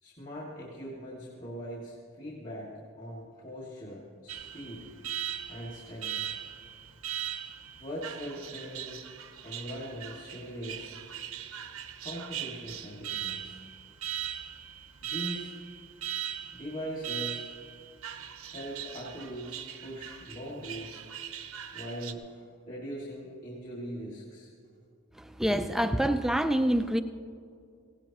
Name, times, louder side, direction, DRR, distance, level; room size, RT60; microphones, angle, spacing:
voice 1, 0.0-4.9 5.3-6.2 7.8-9.0 9.4-11.0 12.0-13.6 15.0-15.5 16.5-17.5 18.5-21.0 21.7-24.5, equal, 35° left, -5 dB, 2.2 m, -41 dB
Alarm, 4.3-22.1, right 10 dB, 75° right, 0.9 m, -40 dB
voice 2, 25.4-27.0, equal, ahead, 9 dB, 0.4 m, -26 dB
17.5 x 17.0 x 3.0 m, 2.3 s
head